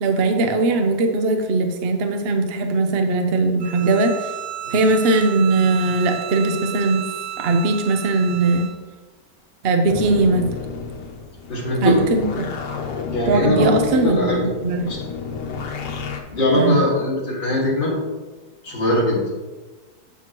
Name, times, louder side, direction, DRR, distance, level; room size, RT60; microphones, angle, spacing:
voice 1, 0.0-4.3 4.7-7.0 7.4-8.7 9.6-10.5 11.8-12.5 13.3-14.9 16.5-16.8, right 3 dB, 60° right, 4 dB, 0.6 m, -19 dB
Bowed string instrument, 3.6-8.8, right 11 dB, 80° right, 1.1 m, -33 dB
sound 1, 9.9-16.2, left 5 dB, 85° left, 1.4 m, -31 dB
voice 2, 11.5-12.0 13.1-14.5 14.9-15.0 16.3-17.9 18.6-19.2, left 1 dB, 30° left, -5 dB, 2.0 m, -21 dB
8.3 x 5.9 x 3.0 m, 1.2 s
omnidirectional pair, 1.8 m